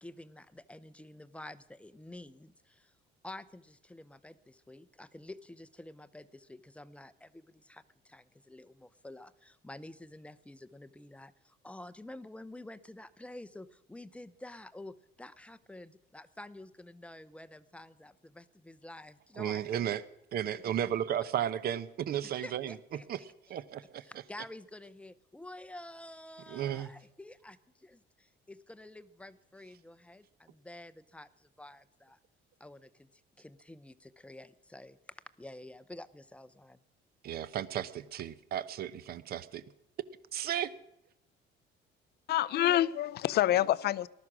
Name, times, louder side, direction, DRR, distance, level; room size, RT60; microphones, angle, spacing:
voice 1, 0.0-2.9 3.2-20.0 22.2-23.1 23.5-23.6 24.0-32.2 32.6-36.8, left 1 dB, 5° left, 0.6 m, -49 dB
voice 2, 19.4-20.0 20.3-23.2 23.5-24.1 26.5-26.9 37.2-39.6 40.3-40.7, right 10 dB, 50° right, 0.8 m, -34 dB
voice 3, 42.3-44.1, left 13 dB, 55° left, 0.6 m, -27 dB
19.0 x 12.5 x 6.1 m
cardioid pair, 140°, 20 cm